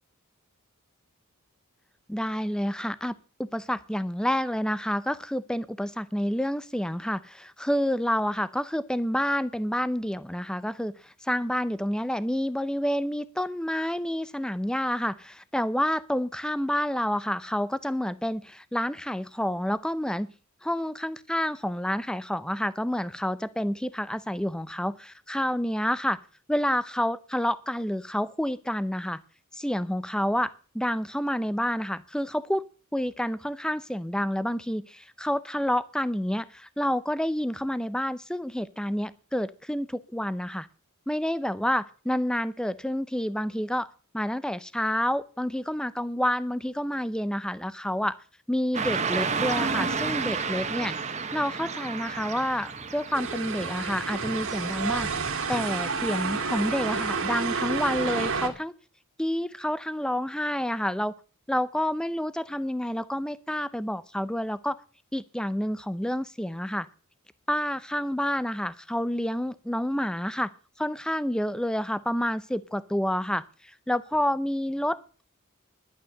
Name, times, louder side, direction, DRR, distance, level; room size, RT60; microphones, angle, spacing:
voice 1, 2.1-20.3 20.6-26.2 26.5-29.2 29.5-32.6 32.9-40.7 41.1-43.9 44.1-48.2 48.5-51.0 51.3-58.7 59.2-61.2 61.5-64.8 65.1-66.9 67.5-70.5 70.8-73.4 73.9-75.2, equal, 5° left, 16 dB, 0.5 m, -29 dB
Car passing by / Traffic noise roadway noise, 48.7-55.6, right 5 dB, 35° right, 1.2 m, -32 dB
sound 1, 53.1-58.5, right 5 dB, 65° right, 2.3 m, -30 dB
11.0 x 9.4 x 6.5 m, 0.37 s
head